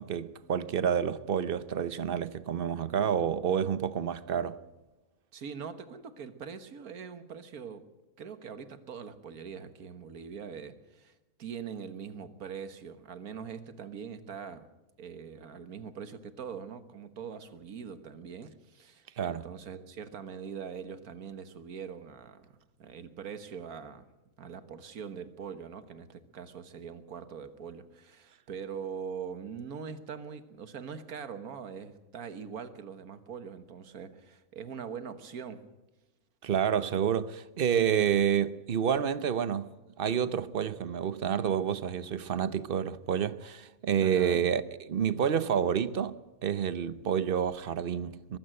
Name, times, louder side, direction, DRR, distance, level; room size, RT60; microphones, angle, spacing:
voice 1, 0.0-4.6 19.2-19.5 36.4-39.7 40.0-48.4, right 8 dB, 50° right, 0.8 m, -29 dB
voice 2, 5.3-7.9 8.2-11.1 11.4-14.7 15.0-22.5 22.8-24.1 24.4-35.6 44.0-44.4, right 7 dB, 80° right, 1.8 m, -42 dB
22.0 x 15.5 x 7.7 m
omnidirectional pair, 1.5 m